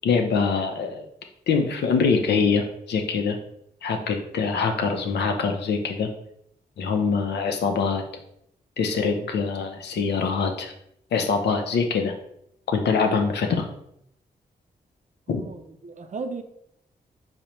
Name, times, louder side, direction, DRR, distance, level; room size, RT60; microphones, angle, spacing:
voice 1, 0.0-1.0 1.5-3.4 3.8-6.1 6.8-8.0 8.8-10.7 11.1-12.1 12.7-13.6 15.3-15.4, left 5 dB, 80° left, 4 dB, 0.5 m, -24 dB
voice 2, 15.3-16.4, right 4 dB, 45° right, 7 dB, 0.5 m, -35 dB
4.9 x 2.1 x 2.9 m, 0.75 s
supercardioid pair, 45°, 17 cm